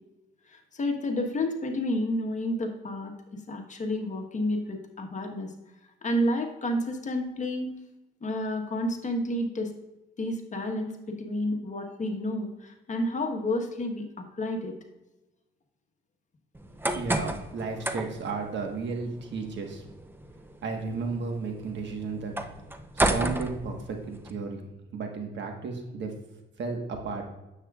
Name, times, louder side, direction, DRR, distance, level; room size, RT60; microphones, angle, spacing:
voice 1, 0.5-5.5 6.0-7.8 8.2-9.7 10.2-14.7, left 1 dB, 35° left, 3 dB, 1.3 m, -30 dB
sound 1, 16.5-24.3, right 1 dB, 10° right, 0.6 m, -33 dB
voice 2, 16.9-19.9 20.6-22.3 22.9-24.6 24.9-26.1 26.6-27.2, right 4 dB, 65° right, 3 dB, 1.4 m, -33 dB
9.5 x 7.3 x 2.4 m, 0.99 s
cardioid pair, 90°, 20 cm